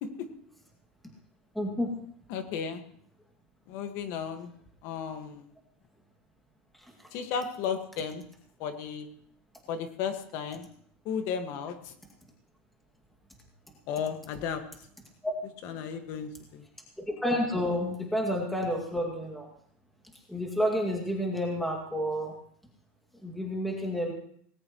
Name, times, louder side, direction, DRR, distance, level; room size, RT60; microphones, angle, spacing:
voice 1, 1.5-2.0 15.2-15.3 17.0-19.5 20.3-22.4 23.2-24.1, equal, ahead, 0 dB, 2.3 m, -30 dB
voice 2, 2.3-2.8 3.7-4.5 4.8-5.5 7.1-8.2 8.6-9.1 9.7-10.7 11.1-11.9 13.9-14.6 15.6-16.6, left 7 dB, 50° left, 7 dB, 1.8 m, -34 dB
19.0 x 16.5 x 3.1 m, 0.64 s
supercardioid pair, 165°, 7 cm